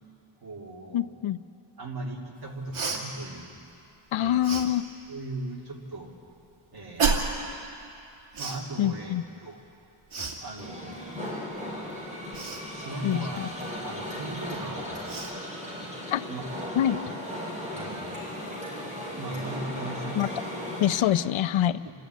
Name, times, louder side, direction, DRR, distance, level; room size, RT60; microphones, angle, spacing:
voice 1, 0.4-1.1 1.8-3.6 4.2-4.4 5.1-6.1 6.7-7.3 8.4-9.1 9.4-9.6 10.4-11.2 12.7-13.5 13.8-15.1 15.8-15.9 16.3-16.6 17.7-20.5 20.9-21.1 21.8-21.9, right 2 dB, 50° right, -1 dB, 2.8 m, -38 dB
voice 2, 0.9-1.4 4.1-4.8 8.8-9.2 13.0-13.5 16.1-16.2 16.8-17.0 20.2-20.3 20.8-21.8, left 11 dB, 70° left, 13 dB, 0.6 m, -25 dB
Cough, 2.7-3.0 4.4-4.7 7.0-7.4 8.3-8.6 10.1-10.4 12.3-12.6 14.5-14.6 15.0-15.3, right 4 dB, 75° right, 2.5 m, -28 dB
sound 1, 10.6-21.0, left 1 dB, 15° right, 5.0 m, -36 dB
28.5 x 11.5 x 9.1 m, 2.6 s
wide cardioid pair, 145°, 50 cm